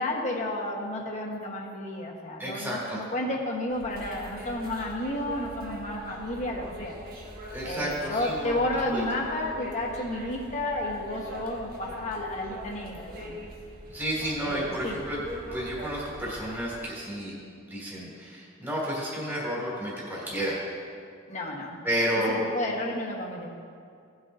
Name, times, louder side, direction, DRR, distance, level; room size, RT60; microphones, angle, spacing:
voice 1, 0.0-6.9 7.6-13.4 14.4-15.0 21.3-21.8 22.3-23.5, left 1 dB, 35° left, -2 dB, 1.4 m, -32 dB
voice 2, 2.4-3.0 7.5-8.5 8.9-9.0 13.9-15.2 15.5-17.3 17.7-20.6 21.8-22.4, equal, 10° right, -6 dB, 2.9 m, -31 dB
sound 1, 3.7-16.8, right 1 dB, 45° right, 1.3 m, -42 dB
17.5 x 7.8 x 2.8 m, 2.3 s
head